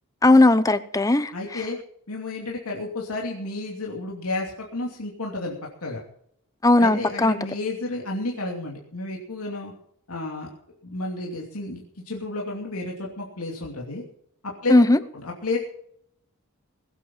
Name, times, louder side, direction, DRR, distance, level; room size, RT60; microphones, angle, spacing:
voice 1, 0.2-1.3 6.6-7.4 14.7-15.0, left 2 dB, 15° left, 0.8 m, -17 dB
voice 2, 1.3-1.8 2.1-5.5 5.8-6.0 6.8-9.7 10.1-10.5 10.8-14.0 14.4-14.7 15.1-15.6, left 2 dB, 75° left, 2.8 m, -31 dB
21.0 x 8.6 x 5.7 m
head